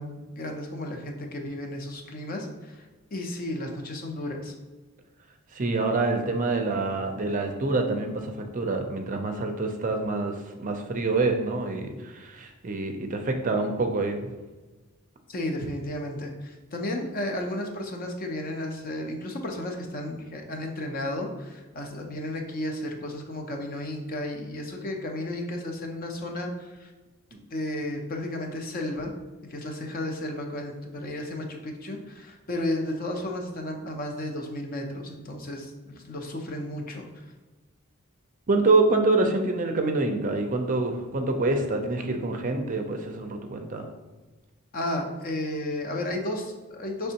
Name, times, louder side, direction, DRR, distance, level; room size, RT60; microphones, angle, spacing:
voice 1, 0.0-4.5 15.3-26.9 27.5-29.1 29.5-37.1 44.7-47.1, left 1 dB, 45° left, 3 dB, 0.6 m, -33 dB
voice 2, 5.5-14.2 27.3-27.4 38.5-43.9, right 3 dB, 35° right, 5 dB, 0.4 m, -26 dB
5.3 x 3.3 x 2.8 m, 1.2 s
head